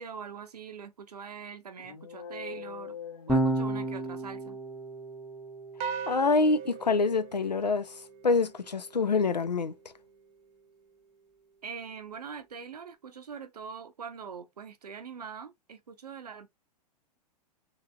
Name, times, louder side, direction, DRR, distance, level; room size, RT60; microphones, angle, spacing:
voice 1, 0.0-3.0 3.3-4.6 11.6-16.5, right 6 dB, 75° right, 0.6 m, -43 dB
sound 1, 1.8-4.3, left 7 dB, 60° left, 0.8 m, -44 dB
Electric guitar / Bass guitar, 3.3-9.7, right 1 dB, ahead, 0.7 m, -35 dB
sound 2, 5.8-8.3, right 7 dB, 30° right, 0.5 m, -39 dB
voice 2, 6.1-9.7, left 4 dB, 85° left, 0.5 m, -26 dB
3.6 x 3.3 x 2.3 m
figure-of-eight pair, 100°, 21 cm